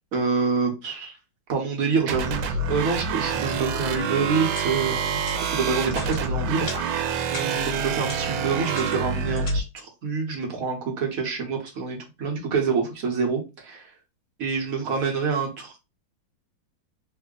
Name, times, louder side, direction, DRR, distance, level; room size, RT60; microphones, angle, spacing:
voice 1, 0.1-1.1 1.5-5.2 5.5-7.0 7.3-13.8 14.4-15.8, right 5 dB, 55° right, 1 dB, 1.2 m, -27 dB
sound 1, 2.1-9.6, right 5 dB, 85° right, 1.4 m, -27 dB
sound 2, 4.5-4.7 5.2-5.5 5.8-6.2 6.5-6.9 7.3-9.5, left 3 dB, 35° left, 0.8 m, -38 dB
3.4 x 2.1 x 3.6 m, 0.27 s
omnidirectional pair, 2.2 m